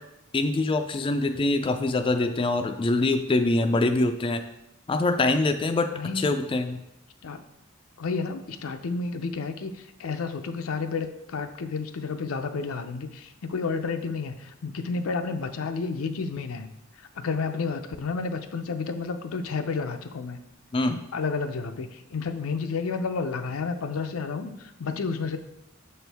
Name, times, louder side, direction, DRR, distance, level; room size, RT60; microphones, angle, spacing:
voice 1, 0.3-4.4 4.9-5.9 6.2-6.8 20.7-21.0, left 2 dB, 25° left, 6 dB, 0.3 m, -24 dB
voice 2, 5.9-6.3 7.2-7.4 8.0-16.7 17.2-20.4 21.1-25.4, left 4 dB, 80° left, 8 dB, 0.5 m, -31 dB
6.8 x 4.4 x 3.4 m, 0.87 s
head